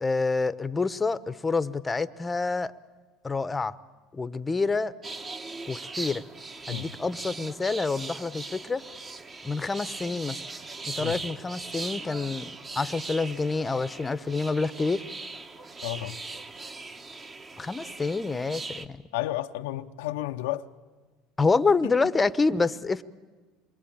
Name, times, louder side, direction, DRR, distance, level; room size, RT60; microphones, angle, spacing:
voice 1, 0.0-2.7 3.2-3.8 4.1-4.9 5.7-6.2 6.7-8.8 9.4-10.4 10.8-15.0 17.6-19.0 21.4-23.0, left 4 dB, 15° left, 0.9 m, -27 dB
sound 1, 5.0-18.9, right 3 dB, 25° right, 1.4 m, -40 dB
voice 2, 15.8-16.2 19.1-20.7 21.8-21.9, left 15 dB, 90° left, 0.8 m, -32 dB
27.5 x 22.5 x 8.9 m
supercardioid pair, 105°, 0 cm